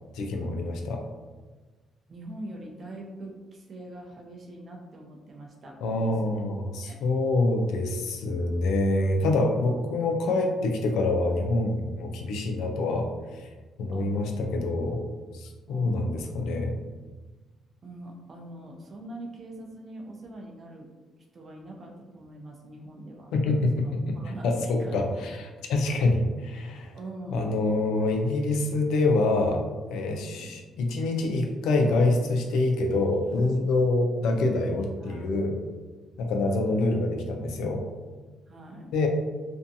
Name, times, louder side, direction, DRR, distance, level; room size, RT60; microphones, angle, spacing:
voice 1, 0.1-1.0 5.8-13.5 13.8-15.0 15.3-16.7 23.3-24.1 24.4-27.0 27.3-29.6 29.9-35.6 36.2-37.8 38.9-39.1, left 2 dB, 85° left, 3 dB, 0.4 m, -26 dB
voice 2, 2.1-6.5 6.8-7.0 9.6-9.7 13.9-14.1 15.7-16.3 17.8-20.9 21.3-23.3 23.8-25.2 25.6-25.7 27.0-27.5 30.2-30.5 35.0-35.4 36.4-36.8 38.5-38.9, right 1 dB, 45° right, 0 dB, 0.5 m, -43 dB
2.5 x 2.2 x 2.6 m, 1.3 s
cardioid pair, 90°, 0 cm